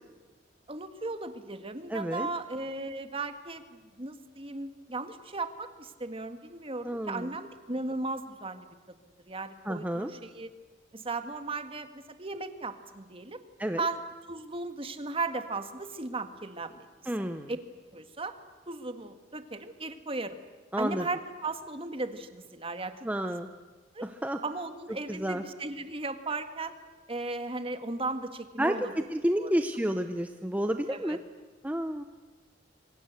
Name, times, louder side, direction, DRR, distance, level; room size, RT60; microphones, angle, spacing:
voice 1, 0.7-8.7 9.3-10.5 10.9-13.4 13.8-14.0 14.3-16.9 17.5-17.6 17.9-18.3 18.7-20.4 20.8-22.9 23.3-23.4 23.9-24.0 24.4-26.7 27.1-28.9 29.4-29.5 30.9-31.2, right 3 dB, 30° right, 9 dB, 1.7 m, -36 dB
voice 2, 1.9-2.3 6.8-7.3 9.6-10.1 13.6-13.9 17.1-17.5 20.7-21.1 23.0-23.5 24.0-24.4 25.1-25.4 28.6-31.2 31.6-32.0, equal, 10° right, 7 dB, 0.8 m, -30 dB
26.5 x 24.0 x 8.2 m, 1.3 s
head